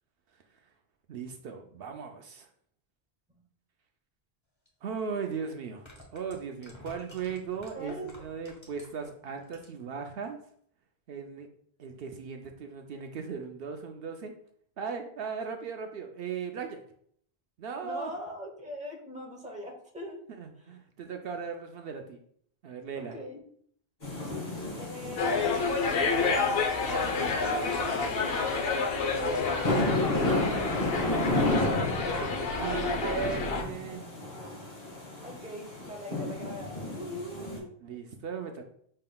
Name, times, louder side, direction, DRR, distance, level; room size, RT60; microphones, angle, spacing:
voice 1, 1.1-2.5 4.8-10.4 11.1-11.5 11.8-14.3 14.8-16.8 17.6-18.1 20.3-22.2 22.6-23.1 32.6-34.1 37.8-38.6, right 6 dB, 70° right, 5 dB, 0.7 m, -37 dB
sound 1, 4.7-4.8 5.6-9.1 9.4-9.9 10.2-10.3, left 1 dB, 30° left, 1.1 m, -51 dB
voice 2, 7.8-8.1 17.8-20.2 23.0-23.4 24.8-28.6 29.2-29.9 30.3-31.9 32.2-32.9 35.2-37.7, left 1 dB, 10° right, 1 dB, 0.8 m, -41 dB
sound 2, 24.0-37.6, left 2 dB, 45° left, 1.9 m, -33 dB
sound 3, 25.2-33.6, left 4 dB, 70° left, 1.0 m, -29 dB
6.3 x 3.7 x 2.3 m, 0.63 s
omnidirectional pair, 1.0 m